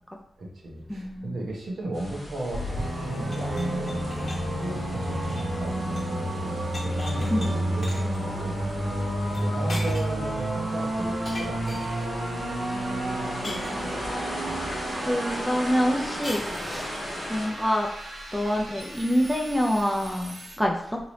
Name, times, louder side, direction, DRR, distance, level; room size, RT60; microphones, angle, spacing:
voice 1, 0.4-4.3 4.6-11.9 14.4-14.8, right 1 dB, 60° right, -2 dB, 1.0 m, -36 dB
voice 2, 0.9-1.4 7.3-7.6 12.7-13.9 15.0-16.9 17.3-17.9 18.3-21.0, equal, ahead, 1 dB, 0.3 m, -27 dB
sound 1, 1.9-17.5, left 1 dB, 15° left, 1.3 m, -39 dB
sound 2, 2.5-20.6, right 1 dB, 85° right, 1.0 m, -31 dB
sound 3, 3.2-6.2 6.4-7.5 7.8-8.2 9.3-9.4 9.7-10.3 11.2-12.1 13.4-14.3 16.2-17.0, left 1 dB, 35° left, 1.0 m, -40 dB
3.1 x 2.8 x 4.0 m, 0.71 s
wide cardioid pair, 170°, 0 cm